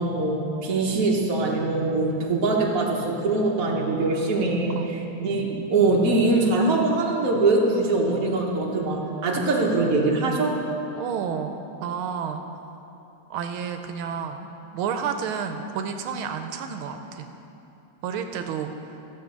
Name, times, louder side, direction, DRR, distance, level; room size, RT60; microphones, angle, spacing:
voice 1, 0.0-10.6, right 2 dB, 45° right, -2 dB, 1.6 m, -23 dB
voice 2, 10.9-12.4 13.3-17.3 18.0-19.0, right 7 dB, 85° right, 6 dB, 1.5 m, -31 dB
14.5 x 7.5 x 5.2 m, 3.0 s
omnidirectional pair, 2.3 m